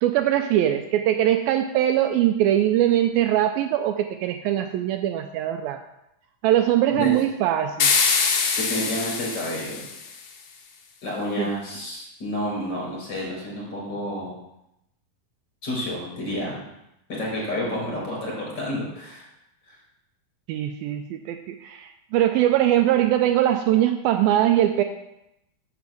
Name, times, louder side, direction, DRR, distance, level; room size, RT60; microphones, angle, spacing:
voice 1, 0.0-5.8 6.4-7.9 11.4-11.5 20.5-24.8, right 12 dB, 80° right, 7 dB, 2.3 m, -21 dB
sound 1, 7.8-10.2, left 5 dB, 60° left, 1.6 m, -23 dB
voice 2, 8.6-9.8 11.0-14.3 15.6-16.6 17.1-19.3 19.7-19.8, left 1 dB, 30° left, -3 dB, 5.5 m, -30 dB
8.4 x 7.1 x 7.6 m, 0.85 s
omnidirectional pair, 4.4 m